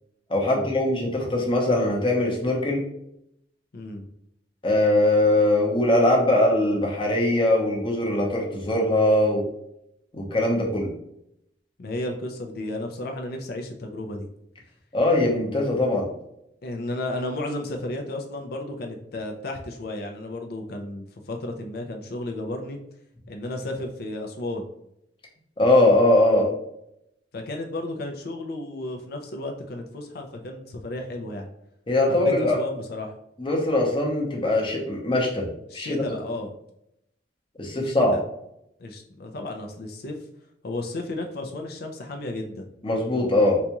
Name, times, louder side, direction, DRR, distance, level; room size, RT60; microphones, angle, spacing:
voice 1, 0.3-2.8 4.6-9.4 10.1-10.9 14.9-16.0 25.6-26.5 31.9-32.6 33.4-35.5 35.7-36.0 37.6-38.1 42.8-43.6, left 1 dB, 30° left, -1 dB, 0.8 m, -21 dB
voice 2, 3.7-4.1 11.8-14.3 16.6-22.8 23.3-24.7 27.3-31.5 32.1-33.2 35.7-36.5 37.7-38.2 38.8-40.1 40.6-42.7, left 1 dB, 60° left, 4 dB, 0.5 m, -33 dB
4.0 x 2.3 x 2.9 m, 0.77 s
head